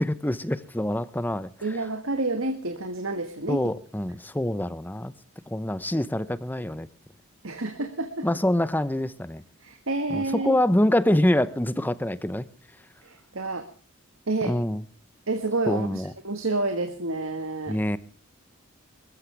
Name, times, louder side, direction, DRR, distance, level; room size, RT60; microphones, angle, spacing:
voice 1, 0.0-1.5 3.5-5.1 5.5-6.9 8.2-9.4 10.1-12.5 14.4-14.8 15.7-16.1 17.7-18.0, left 1 dB, 10° left, 0.7 m, -25 dB
voice 2, 1.6-3.7 7.4-8.3 9.6-10.6 13.0-13.7 14.3-14.6 15.3-17.8, right 2 dB, 70° right, 1.7 m, -29 dB
23.0 x 14.0 x 3.4 m
head